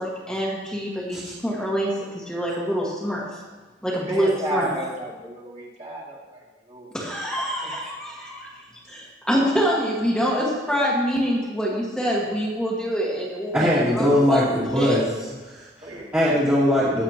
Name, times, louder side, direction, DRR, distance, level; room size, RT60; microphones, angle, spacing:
voice 1, 0.0-3.2 3.8-4.7 6.9-8.5 8.9-13.5 13.9-15.0, equal, 5° left, -5 dB, 1.7 m, -25 dB
voice 2, 3.9-7.0 7.6-7.7 8.8-9.0 15.8-16.1, right 2 dB, 35° right, -5 dB, 2.6 m, -33 dB
voice 3, 13.5-15.0 15.5-15.7 16.1-17.0, equal, 10° right, -10 dB, 2.3 m, -20 dB
21.0 x 7.5 x 3.0 m, 1.3 s
head